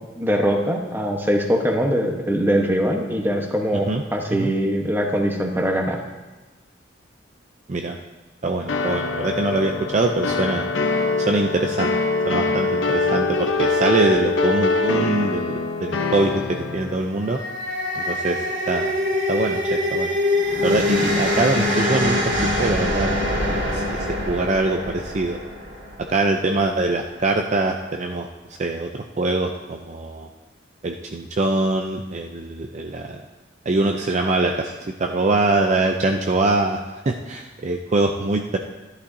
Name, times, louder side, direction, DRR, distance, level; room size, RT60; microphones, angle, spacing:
voice 1, 0.2-6.0, equal, 10° right, 2 dB, 1.0 m, -22 dB
voice 2, 8.4-11.9 12.2-17.4 17.9-18.9 19.3-20.1 20.6-22.3 22.6-23.1 23.4-25.4 26.1-28.3 28.6-30.3 30.8-33.2 33.7-34.7 35.0-38.6, right 2 dB, 35° right, 3 dB, 0.5 m, -23 dB
sound 1, 8.7-17.0, left 3 dB, 80° left, 0.8 m, -23 dB
sound 2, 17.1-26.4, left 1 dB, 75° right, 2.3 m, -24 dB
13.0 x 11.5 x 2.7 m, 1.2 s
head